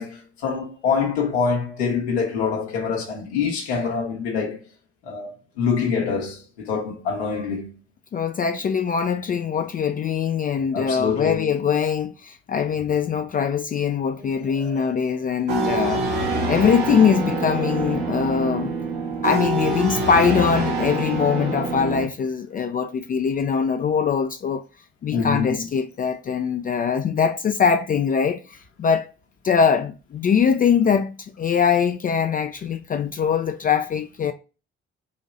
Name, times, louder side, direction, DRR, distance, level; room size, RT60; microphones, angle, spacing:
voice 1, 0.0-4.6 5.0-7.7 10.7-11.5 14.2-14.9 15.5-15.7 25.1-25.7, left 5 dB, 75° left, 1.0 m, -26 dB
voice 2, 8.1-16.0 16.5-18.7 19.2-24.6 25.0-29.1 29.4-34.3, left 7 dB, 25° left, 0.4 m, -22 dB
sound 1, 15.5-22.1, right 3 dB, 65° right, 1.3 m, -25 dB
4.1 x 2.9 x 3.7 m
figure-of-eight pair, 45°, 32 cm